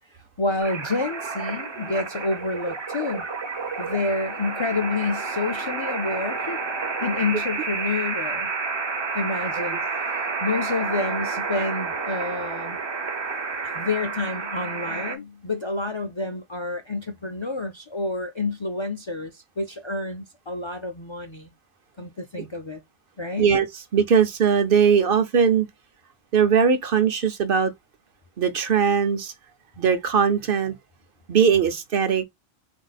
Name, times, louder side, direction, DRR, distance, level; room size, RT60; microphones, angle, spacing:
voice 1, 0.4-3.3 3.8-6.6 7.0-8.5 9.1-12.8 13.6-21.5 22.0-22.8 23.2-23.5, left 3 dB, 40° left, 0.4 m, -29 dB
sound 1, 0.6-15.2, right 4 dB, 35° right, 0.5 m, -30 dB
voice 2, 23.9-25.7 26.3-27.7 28.4-29.3 29.8-30.7 31.3-32.2, right 6 dB, 60° right, 0.8 m, -20 dB
4.0 x 2.6 x 3.9 m
omnidirectional pair, 1.1 m